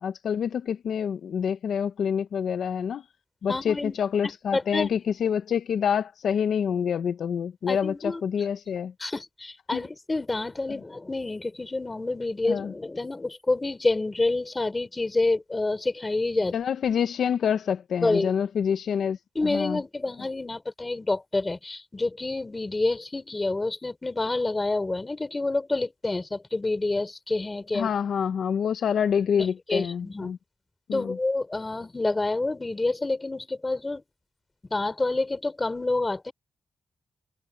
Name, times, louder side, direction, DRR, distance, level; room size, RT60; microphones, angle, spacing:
voice 1, 0.0-3.0 3.4-8.9 9.7-9.9 12.4-12.7 16.5-19.2 19.4-19.8 27.7-30.4 30.9-31.2, left 7 dB, 70° left, 0.6 m, -27 dB
voice 2, 3.5-3.9 4.5-4.9 7.7-8.2 9.0-16.5 18.0-18.3 19.3-27.9 29.7-30.3 30.9-34.0 34.7-36.3, left 2 dB, 20° left, 3.3 m, -28 dB
wide cardioid pair, 150°, 0 cm